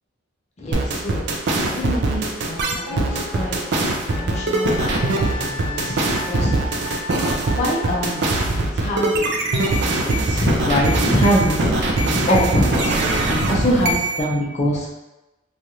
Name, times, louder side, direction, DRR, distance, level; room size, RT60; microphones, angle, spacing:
voice 1, 0.6-1.2 1.6-3.6 4.2-6.6 7.6-8.4 8.8-9.3 9.5-11.9 12.3-12.7 13.3-14.9, equal, 35° left, -2 dB, 0.5 m, -23 dB
sound 1, 0.7-14.2, right 2 dB, 55° right, 0.4 m, -22 dB
sound 2, 2.4-5.6, left 1 dB, 15° right, 1.4 m, -38 dB
Wind instrument woodwind instrument, 4.1-8.4, left 3 dB, 50° left, 1.2 m, -33 dB
3.1 x 2.4 x 2.7 m, 1.0 s
head